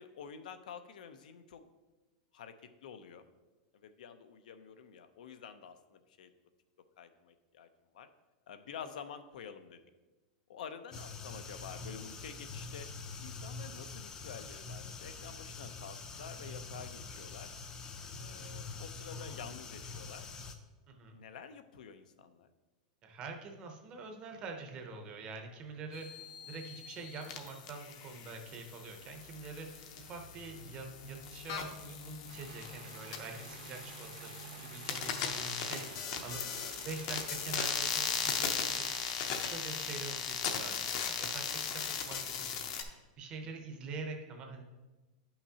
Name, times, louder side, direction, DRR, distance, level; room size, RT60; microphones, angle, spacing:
voice 1, 0.0-1.7 2.3-3.2 3.7-6.3 7.0-7.7 7.9-8.1 8.5-9.8 10.5-12.9 13.2-17.5 18.2-20.3 21.1-22.5, left 7 dB, 80° left, 9 dB, 0.6 m, -49 dB
sound 1, 10.9-20.6, left 4 dB, 15° left, 0.4 m, -45 dB
voice 2, 20.9-21.2 23.0-36.4 36.8-38.9 39.4-44.6, right 4 dB, 20° right, 4 dB, 0.7 m, -45 dB
sound 2, 25.9-42.8, left 7 dB, 40° left, 0.7 m, -38 dB
sound 3, 32.3-39.1, right 6 dB, 70° right, 0.9 m, -52 dB
10.5 x 5.7 x 2.8 m, 1.2 s
supercardioid pair, 180°, 4 cm